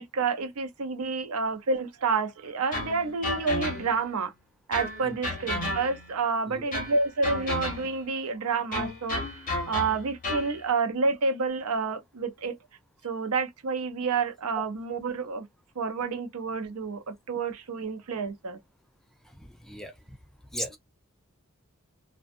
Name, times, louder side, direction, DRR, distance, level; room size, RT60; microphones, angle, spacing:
voice 1, 0.0-4.3 4.7-12.6 13.0-15.5 15.8-18.6, right 4 dB, 85° right, 0.6 m, -29 dB
sound 1, 2.7-4.1 4.7-6.2 6.7-8.1 8.7-10.6, left 2 dB, 40° left, 1.1 m, -33 dB
voice 2, 19.2-20.2 20.5-20.8, equal, ahead, 0.4 m, -38 dB
2.5 x 2.3 x 2.4 m
head